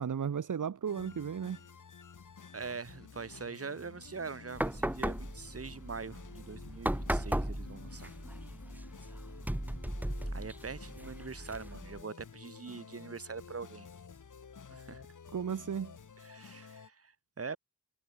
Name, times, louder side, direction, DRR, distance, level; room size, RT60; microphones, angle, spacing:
voice 1, 0.0-1.6 15.3-15.9, right 7 dB, 65° right, 1.4 m, -34 dB
sound 1, 0.9-16.9, left 6 dB, 65° left, 4.0 m, -52 dB
voice 2, 2.5-8.1 10.3-13.9 14.7-15.0 16.2-17.6, right 5 dB, 45° right, 2.8 m, -43 dB
sound 2, 4.5-12.0, right 1 dB, 5° right, 1.3 m, -37 dB
wide cardioid pair, 140°, 33 cm